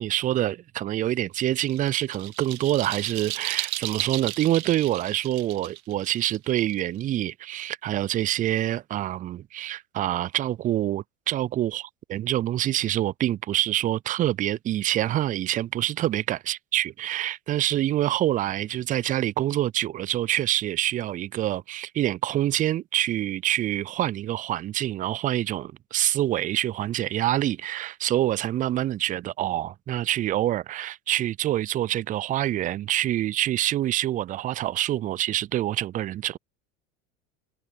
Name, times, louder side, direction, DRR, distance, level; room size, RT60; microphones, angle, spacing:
voice 1, 0.0-11.8 12.1-36.4, right 13 dB, 20° right, 0.3 m, -26 dB
sound 1, 1.4-7.2, right 17 dB, 70° right, 2.6 m, -35 dB
hypercardioid pair, 80°, 44 cm